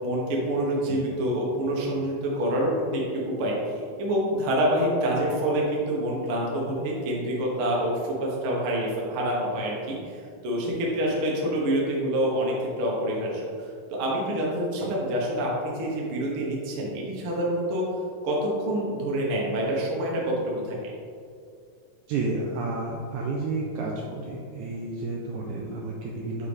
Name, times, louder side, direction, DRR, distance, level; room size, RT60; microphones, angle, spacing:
voice 1, 0.0-3.6 4.0-17.9 18.2-20.9, right 1 dB, 60° right, -3 dB, 1.5 m, -27 dB
voice 2, 22.1-26.5, right 3 dB, 80° right, -2 dB, 1.8 m, -31 dB
7.6 x 4.8 x 3.4 m, 2.3 s
omnidirectional pair, 4.0 m